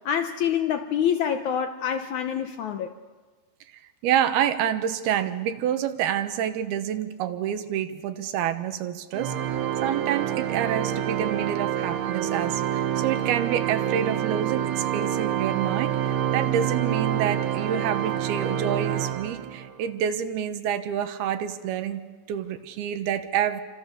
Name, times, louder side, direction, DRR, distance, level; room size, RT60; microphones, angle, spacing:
voice 1, 0.1-2.9, left 8 dB, 75° left, 7 dB, 1.8 m, -26 dB
voice 2, 4.0-9.3 9.8-22.0 22.3-23.6, right 9 dB, 85° right, 9 dB, 3.1 m, -28 dB
Organ, 9.1-19.8, right 10 dB, 60° right, 1.9 m, -27 dB
28.5 x 25.5 x 6.9 m, 1.4 s
omnidirectional pair, 4.4 m